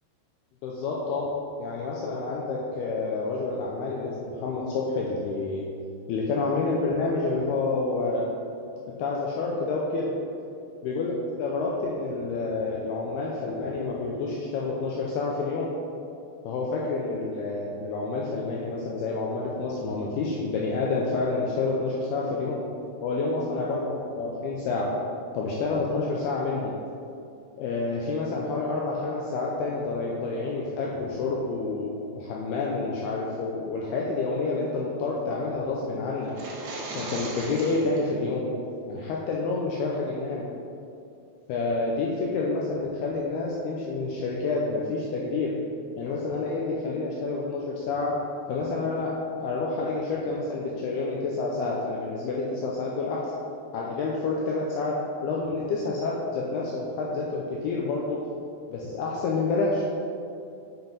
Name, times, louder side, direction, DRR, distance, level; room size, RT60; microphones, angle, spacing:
voice 1, 0.6-1.3 1.6-5.7 6.1-8.3 9.0-10.1 10.8-15.7 16.4-22.6 23.0-24.9 25.3-26.7 27.6-36.3 37.0-38.5 38.9-40.5 41.5-45.5 46.0-48.1 48.5-49.1 49.4-53.3 53.7-55.0 55.2-58.2 58.7-59.8, left 3 dB, 85° left, -3 dB, 2.3 m, -28 dB
sound 1, 36.2-38.0, right 2 dB, 75° right, 1.7 m, -37 dB
7.7 x 6.0 x 5.2 m, 2.6 s
omnidirectional pair, 5.4 m